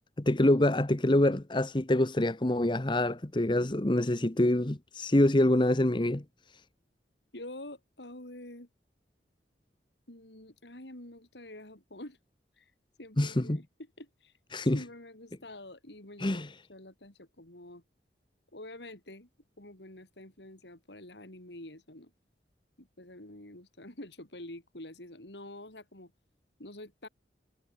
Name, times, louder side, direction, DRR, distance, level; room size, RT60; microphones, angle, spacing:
voice 1, 0.2-6.2 13.2-13.6 14.5-14.8 16.2-16.5, left 1 dB, 25° left, 1.0 m, -26 dB
voice 2, 7.3-8.7 10.1-12.2 12.6-12.7 13.0-13.6 14.0-14.3 14.7-17.8 18.5-19.3 19.6-22.1 22.8-26.1 26.6-27.1, left 1 dB, 75° left, 4.8 m, -47 dB
head